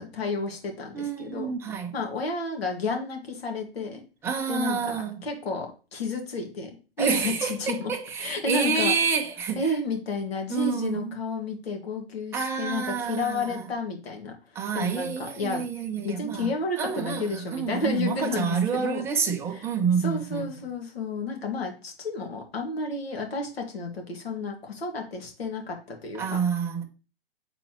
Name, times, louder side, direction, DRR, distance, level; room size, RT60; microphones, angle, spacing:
voice 1, 0.0-1.5 1.9-4.0 4.5-7.9 8.2-8.9 9.6-15.6 16.0-19.0 19.5-19.7 20.0-26.4, left 3 dB, 75° left, 2.0 m, -31 dB
voice 2, 0.9-1.9 4.2-5.2 7.0-9.6 10.5-11.2 12.3-13.6 14.5-16.5 16.8-20.6 26.2-26.8, right 6 dB, 10° right, 0.6 m, -28 dB
7.7 x 4.0 x 3.0 m
hypercardioid pair, 140°, 31 cm